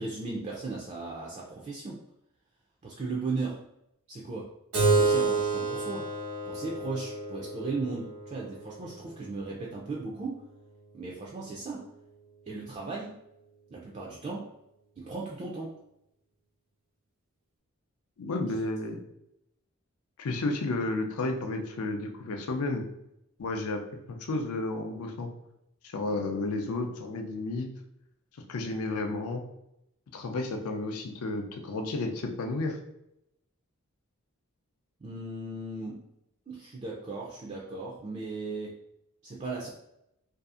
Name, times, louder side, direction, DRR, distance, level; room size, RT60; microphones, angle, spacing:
voice 1, 0.0-2.0 2.8-3.6 4.1-4.5 4.9-6.1 6.4-10.4 10.9-11.9 12.5-13.2 13.7-14.5 15.0-15.7 18.5-18.6 35.0-36.0 36.5-38.8 39.2-39.7, right 3 dB, 30° right, -3 dB, 0.3 m, -36 dB
Keyboard (musical), 4.7-9.8, right 3 dB, 90° right, 1.0 m, -29 dB
voice 2, 18.2-19.0 20.2-22.8 23.4-23.8 24.1-25.3 25.8-27.7 28.5-29.4 30.1-32.8, left 2 dB, 80° left, 4 dB, 0.4 m, -32 dB
2.6 x 2.4 x 2.4 m, 0.82 s
head